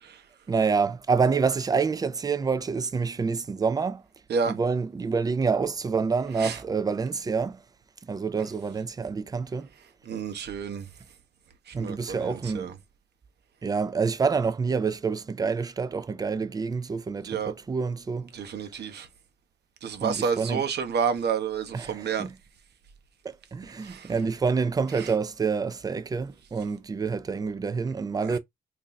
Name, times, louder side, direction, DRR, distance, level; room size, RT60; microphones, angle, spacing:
voice 1, 0.5-4.0 4.5-7.6 8.1-9.7 11.7-12.7 13.6-18.3 20.0-20.6 21.7-22.3 23.2-28.4, right 5 dB, 20° right, 0.4 m, -27 dB
voice 2, 10.0-10.9 11.7-12.7 17.2-17.5 18.3-19.1 19.8-22.3 23.8-24.1 25.0-25.1 28.3-28.4, right 6 dB, 55° right, 0.8 m, -30 dB
2.7 x 2.2 x 3.9 m
cardioid pair, 90°, 20 cm